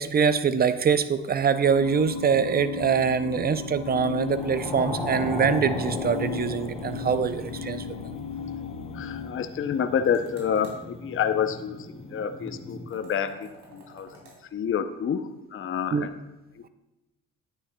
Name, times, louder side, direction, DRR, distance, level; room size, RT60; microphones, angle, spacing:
voice 1, 0.0-8.0 15.9-16.1, right 6 dB, 30° right, 12 dB, 0.5 m, -24 dB
sound 1, 1.6-9.3, left 8 dB, 85° left, 0.6 m, -36 dB
sound 2, 3.9-4.9 6.8-7.2 7.5-7.6 7.9-8.0 10.0-10.8 12.9-14.4, right 1 dB, 80° right, 2.9 m, -51 dB
sound 3, 4.2-12.9, left 1 dB, ahead, 2.7 m, -36 dB
voice 2, 8.9-14.2 14.5-16.1 16.6-16.7, left 8 dB, 45° left, 9 dB, 0.6 m, -28 dB
9.9 x 9.5 x 2.3 m, 0.99 s
cardioid pair, 90°, 30 cm